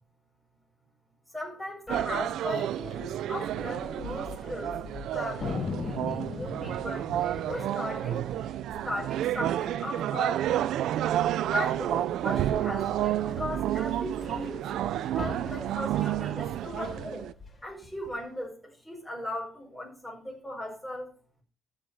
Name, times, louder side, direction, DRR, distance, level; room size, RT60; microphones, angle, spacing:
voice 1, 1.3-4.8 5.1-7.1 7.5-8.2 8.8-10.4 11.5-14.6 15.1-17.3 17.6-21.1, left 1 dB, 5° left, -3 dB, 5.0 m, -37 dB
sound 1, 1.9-18.3, left 3 dB, 30° left, 4.3 m, -47 dB
sound 2, 1.9-17.3, right 12 dB, 80° right, 0.5 m, -30 dB
Thunder, 5.4-10.2 10.5-10.6 10.8-11.3 11.8-13.0, left 6 dB, 55° left, 1.3 m, -39 dB
14.5 x 6.5 x 5.6 m, 0.40 s
cardioid pair, 90°, 0 cm